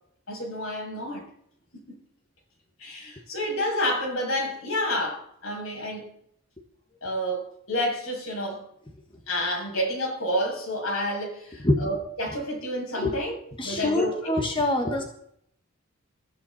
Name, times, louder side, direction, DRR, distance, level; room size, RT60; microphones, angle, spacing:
voice 1, 0.3-1.3 1.7-2.0 2.8-6.1 7.0-8.7 9.3-13.3 13.6-14.4 14.8-15.0, equal, 75° left, 7.4 m, -29 dB
voice 2, 13.6-15.1, left 1 dB, 25° left, 1.6 m, -25 dB
23.0 x 13.5 x 4.3 m
head